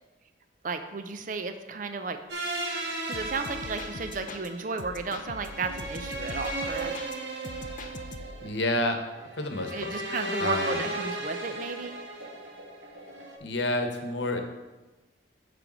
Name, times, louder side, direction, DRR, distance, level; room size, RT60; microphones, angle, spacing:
voice 1, 0.6-2.2 3.1-6.9 9.7-12.0, right 4 dB, 45° right, 8 dB, 0.5 m, -34 dB
sound 1, 2.3-13.4, right 1 dB, 90° right, 1.5 m, -36 dB
sound 2, 3.1-4.5 4.8-7.2 7.4-8.5, left 3 dB, 45° left, 0.5 m, -42 dB
voice 2, 8.4-9.0 9.4-9.9 10.4-10.8 13.4-14.4, left 1 dB, 75° left, 5 dB, 0.9 m, -29 dB
8.8 x 3.3 x 6.1 m, 1.1 s
head